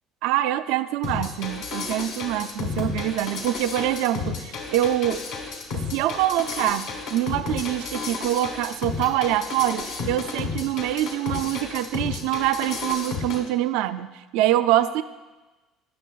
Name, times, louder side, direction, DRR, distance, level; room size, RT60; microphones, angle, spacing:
voice 1, 0.2-5.2 5.7-15.0, right 13 dB, 70° right, 12 dB, 0.3 m, -25 dB
sound 1, 1.0-13.4, left 4 dB, 75° left, 1.7 m, -32 dB
17.5 x 6.6 x 2.3 m, 1.2 s
hypercardioid pair, 65°, 0 cm